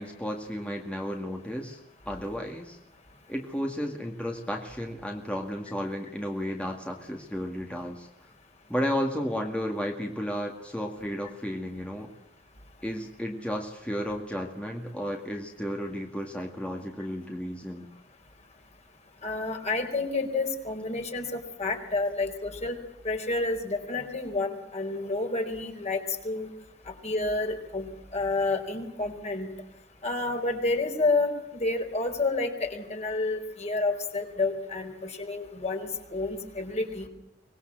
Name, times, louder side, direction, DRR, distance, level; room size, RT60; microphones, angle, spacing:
voice 1, 0.0-1.8 2.1-2.8 3.3-8.1 8.7-12.1 12.8-17.9, equal, 5° left, 1 dB, 2.0 m, -33 dB
voice 2, 19.2-22.8 23.0-26.5 26.9-29.5 30.0-37.1, left 3 dB, 40° left, 4 dB, 4.3 m, -29 dB
24.5 x 20.5 x 7.7 m, 0.87 s
head